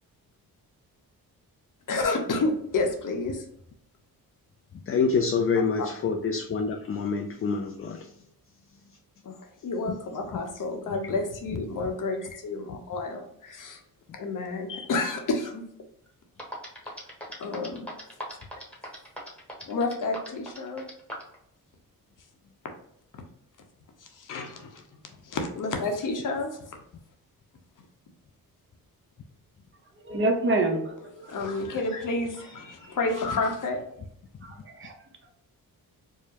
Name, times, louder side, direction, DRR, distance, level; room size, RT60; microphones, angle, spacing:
voice 1, 1.9-3.4 5.8-5.9 9.2-13.8 14.1-15.7 17.4-17.9 19.7-20.8 24.1-24.8 25.2-26.8 31.3-33.8, left 3 dB, 55° left, 4 dB, 0.8 m, -30 dB
voice 2, 4.9-8.1, left 5 dB, 40° left, 3 dB, 0.4 m, -26 dB
sound 1, 16.1-16.2 16.4-21.3, equal, 5° left, 1.1 m, -39 dB
voice 3, 30.1-31.3 34.8-34.9, right 2 dB, 35° right, 3 dB, 0.8 m, -26 dB
4.8 x 2.1 x 2.9 m, 0.72 s
cardioid pair, 90°, 37 cm